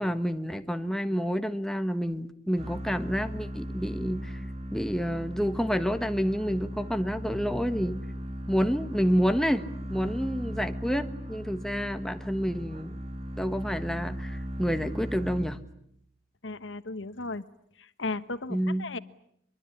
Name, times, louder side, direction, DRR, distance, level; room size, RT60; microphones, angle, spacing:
voice 1, 0.0-4.4 4.7-8.0 8.5-13.0 13.4-15.6 18.5-18.9, equal, 5° left, 8 dB, 1.3 m, -29 dB
sound 1, 2.5-16.0, equal, 35° right, 2.6 m, -37 dB
voice 2, 16.4-17.4 17.7-19.0, left 3 dB, 80° left, 13 dB, 1.3 m, -35 dB
24.0 x 23.5 x 9.8 m, 0.72 s
head